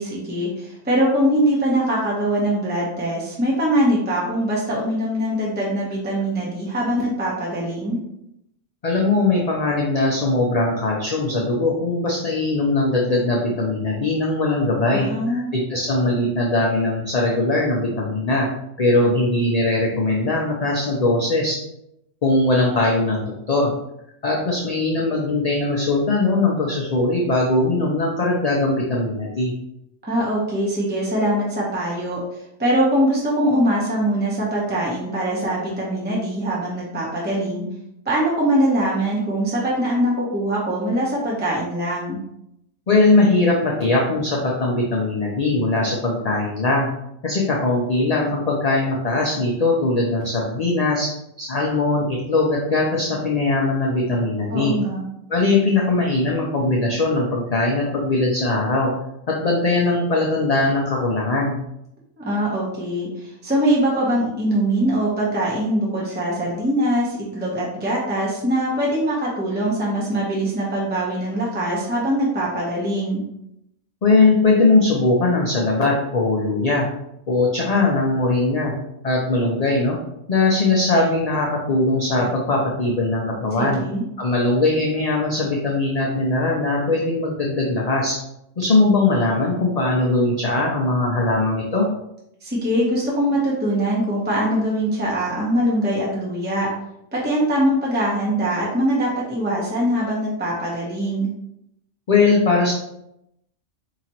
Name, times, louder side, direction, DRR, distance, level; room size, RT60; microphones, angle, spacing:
voice 1, 0.0-8.0 14.9-15.5 30.1-32.2 32.6-37.6 38.0-42.2 54.5-55.0 62.2-73.2 83.6-84.0 92.4-96.7 97.1-101.3, right 1 dB, 10° right, -5 dB, 0.8 m, -22 dB
voice 2, 8.8-18.5 18.8-21.6 22.2-23.7 24.2-29.5 42.9-46.9 47.2-51.1 51.4-54.7 55.3-58.9 59.3-61.6 74.0-76.9 77.3-78.7 79.0-80.0 80.3-83.8 84.2-88.2 88.6-91.9 102.1-102.7, left 2 dB, 45° left, -2 dB, 0.6 m, -20 dB
4.9 x 2.9 x 2.9 m, 0.81 s
omnidirectional pair, 1.3 m